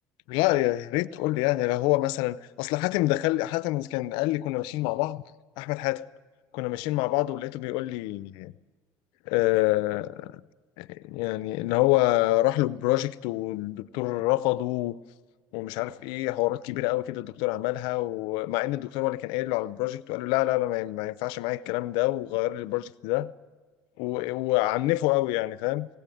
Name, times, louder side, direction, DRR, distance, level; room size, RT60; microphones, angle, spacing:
voice 1, 0.3-5.2 5.6-6.0 6.5-8.5 9.3-10.4 10.8-15.0 15.5-23.3 24.0-25.9, left 18 dB, 85° left, 18 dB, 0.7 m, -27 dB
19.5 x 17.0 x 9.2 m, 1.4 s
cardioid pair, 120°, 8 cm